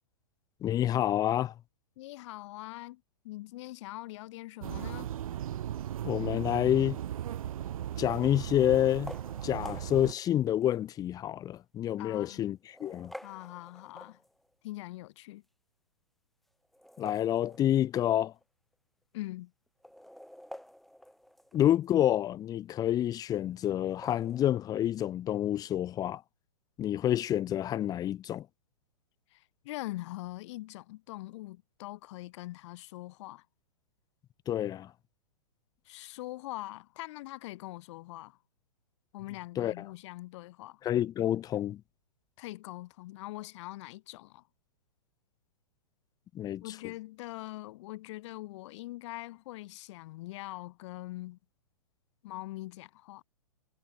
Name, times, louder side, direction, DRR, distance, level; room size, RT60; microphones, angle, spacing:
voice 1, 0.6-1.5 6.0-7.0 8.0-9.1 9.4-13.1 17.0-18.3 21.5-26.2 26.8-28.5 34.5-34.9 39.6-39.7 40.8-41.8 46.3-46.6, left 11 dB, 20° left, 0.7 m, -28 dB
voice 2, 2.0-5.1 12.0-12.5 13.2-14.2 14.6-15.4 19.1-19.5 29.3-33.5 35.9-38.4 39.1-40.8 42.4-44.4 46.6-51.4 52.2-53.2, left 18 dB, 50° left, 3.7 m, -43 dB
sound 1, 4.6-10.1, right 11 dB, 65° right, 4.2 m, -37 dB
sound 2, 7.2-7.6 8.8-10.9 11.6-11.7 12.5-14.5 16.6-18.1 18.4-18.5 18.7-18.8 19.7-21.9 23.8-24.4, equal, ahead, 4.9 m, -49 dB
hypercardioid pair, 120°, 20 cm